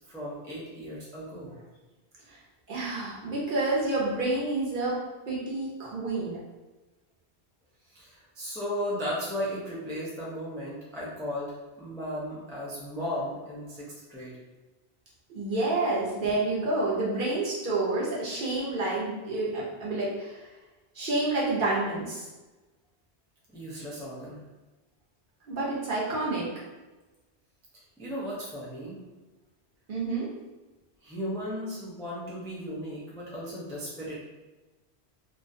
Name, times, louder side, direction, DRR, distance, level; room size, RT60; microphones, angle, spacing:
voice 1, 0.1-1.6 7.9-14.4 23.5-24.4 28.0-29.0 31.0-34.1, equal, 5° left, -7 dB, 0.3 m, -36 dB
voice 2, 2.7-5.0 5.3-6.4 15.3-20.5 20.9-22.3 25.5-26.5 29.9-30.3, right 2 dB, 55° right, -6 dB, 0.8 m, -29 dB
2.4 x 2.1 x 2.6 m, 1.1 s
omnidirectional pair, 1.1 m